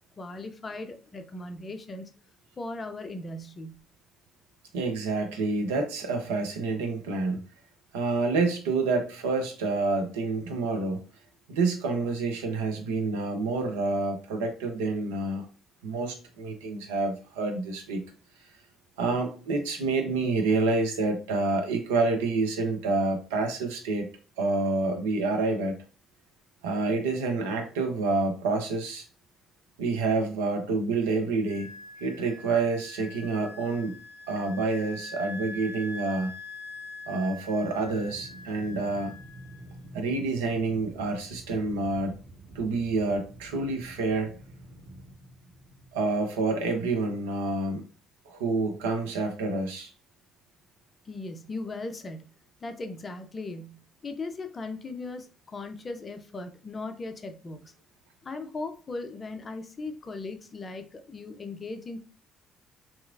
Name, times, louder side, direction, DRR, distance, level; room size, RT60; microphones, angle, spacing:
voice 1, 0.2-2.1 2.6-3.8 51.0-52.3 52.6-57.7 58.2-62.0, left 3 dB, 30° left, 0.5 m, -38 dB
voice 2, 4.7-7.4 7.9-11.0 11.5-15.5 15.8-18.0 19.0-24.1 24.4-25.8 26.6-29.0 29.8-31.7 32.0-33.9 34.3-36.3 37.1-39.1 39.9-42.1 42.5-44.3 45.9-47.8 48.3-49.9, right 3 dB, 70° right, 0.5 m, -28 dB
Wind instrument woodwind instrument, 31.4-39.7, left 2 dB, 80° left, 0.6 m, -44 dB
Aircraft, 37.7-47.1, right 1 dB, 55° right, 1.0 m, -48 dB
2.9 x 2.4 x 2.4 m
figure-of-eight pair, 45°, 0 cm